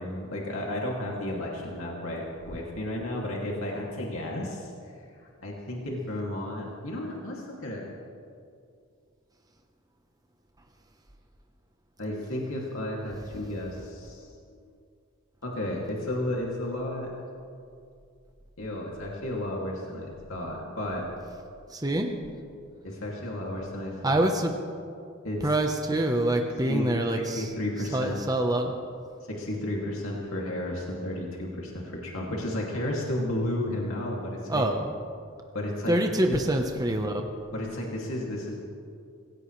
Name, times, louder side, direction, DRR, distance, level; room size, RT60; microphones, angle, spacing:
voice 1, 0.0-4.7 5.4-7.8 12.0-14.6 15.4-17.1 18.6-21.1 22.8-24.2 25.2-25.6 26.6-28.2 29.3-34.7 35.5-36.4 37.5-38.5, left 1 dB, 70° left, -3 dB, 2.6 m, -33 dB
voice 2, 21.7-22.2 24.0-24.5 25.4-27.5 27.9-28.7 34.5-34.9 35.9-37.2, right 1 dB, 20° right, 3 dB, 1.0 m, -25 dB
26.0 x 16.5 x 3.3 m, 2.4 s
head